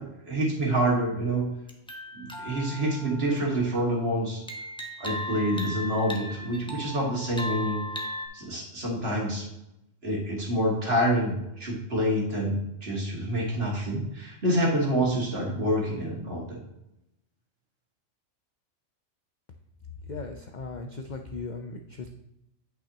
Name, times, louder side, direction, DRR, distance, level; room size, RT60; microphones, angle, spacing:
voice 1, 0.0-1.5 2.1-4.4 5.0-7.8 8.3-9.4 10.0-16.6, right 1 dB, 45° right, -3 dB, 2.2 m, -27 dB
sound 1, 1.7-3.9 4.5-8.3, equal, 5° left, 0.7 m, -37 dB
voice 2, 20.1-22.1, left 3 dB, 65° left, 4 dB, 0.4 m, -37 dB
8.9 x 5.5 x 2.9 m, 0.86 s
omnidirectional pair, 1.4 m